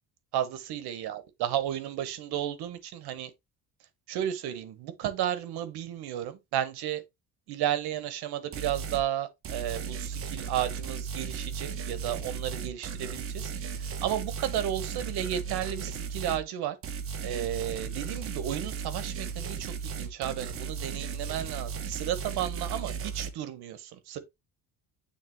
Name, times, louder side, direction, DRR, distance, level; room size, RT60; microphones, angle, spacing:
voice 1, 0.3-3.3 4.1-7.0 7.5-16.7 17.2-24.2, right 11 dB, 85° right, 1.3 m, -33 dB
sound 1, 8.5-9.1 9.4-16.4 16.8-23.3, right 6 dB, 35° right, 0.9 m, -36 dB
9.3 x 3.5 x 3.1 m
cardioid pair, 170°, 37 cm